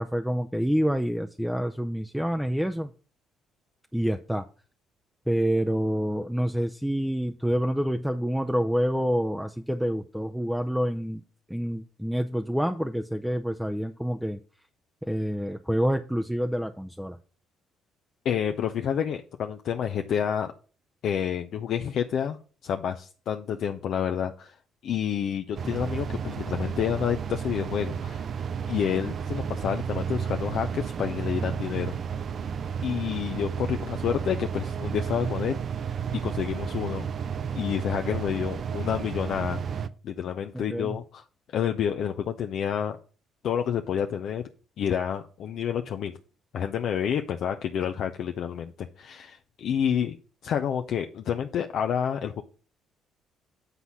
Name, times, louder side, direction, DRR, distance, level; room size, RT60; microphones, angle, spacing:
voice 1, 0.0-2.9 3.9-4.5 5.3-11.2 11.5-14.4 15.0-17.2 40.5-41.0, equal, ahead, 0.5 m, -27 dB
voice 2, 18.2-20.5 21.0-24.5 24.8-28.2 28.7-32.0 32.8-36.0 36.2-37.1 37.5-41.2 41.5-43.0 43.4-44.4 44.8-46.1 46.5-50.2 50.4-52.4, left 8 dB, 60° left, 0.5 m, -29 dB
sound 1, 25.6-39.9, right 7 dB, 50° right, 0.5 m, -32 dB
8.2 x 4.0 x 5.9 m
hypercardioid pair, 50°, 0 cm